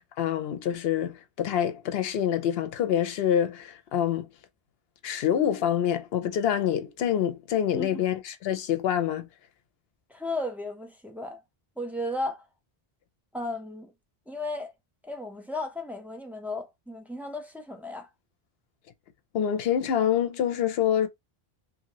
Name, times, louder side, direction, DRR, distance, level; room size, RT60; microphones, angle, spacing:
voice 1, 0.0-4.3 5.0-9.3 19.3-21.1, left 9 dB, 80° left, 0.8 m, -26 dB
voice 2, 7.7-8.0 10.1-11.4 11.8-12.5 13.3-13.9 14.3-14.7 15.0-18.1, left 2 dB, ahead, 0.5 m, -34 dB
2.8 x 2.6 x 2.9 m
omnidirectional pair, 1.0 m